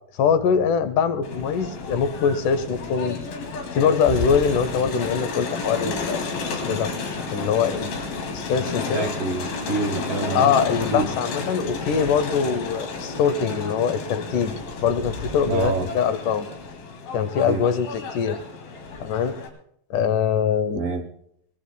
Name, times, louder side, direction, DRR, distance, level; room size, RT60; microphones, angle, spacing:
voice 1, 0.2-3.2 3.7-6.2 6.7-6.9 7.3-9.1 10.4-14.5 14.8-16.5 17.1-18.4 19.0-19.4 19.9-20.8, left 7 dB, 75° left, 11 dB, 2.1 m, -23 dB
Crowd, 1.2-19.5, left 3 dB, 90° left, 4.2 m, -31 dB
voice 2, 8.9-10.5 10.9-11.1 15.5-15.9 17.5-17.6 20.7-21.1, right 4 dB, 65° right, 3 dB, 1.5 m, -26 dB
22.5 x 19.5 x 2.2 m, 0.70 s
omnidirectional pair, 4.0 m